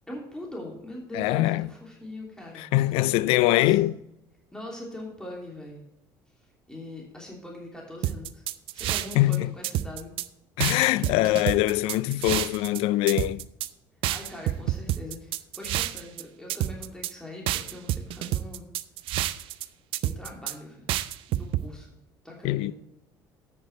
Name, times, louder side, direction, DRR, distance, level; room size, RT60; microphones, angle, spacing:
voice 1, 0.1-2.7 3.5-3.9 4.5-5.8 6.7-8.4 8.7-10.1 14.1-18.6 20.0-20.8 21.3-21.9 22.2-22.7, left 1 dB, 5° left, 2.9 m, -41 dB
voice 2, 1.1-1.7 2.6-3.9 9.2-9.5 10.6-13.4 22.4-22.7, left 17 dB, 75° left, 0.4 m, -23 dB
sound 1, 8.0-9.4 9.6-10.3 10.6-12.8 13.1-13.7 14.0-16.2 16.5-17.1 17.5-19.6 19.9-20.5 20.9-21.6, right 14 dB, 65° right, 0.5 m, -28 dB
8.4 x 6.6 x 4.6 m
supercardioid pair, 70°, 10 cm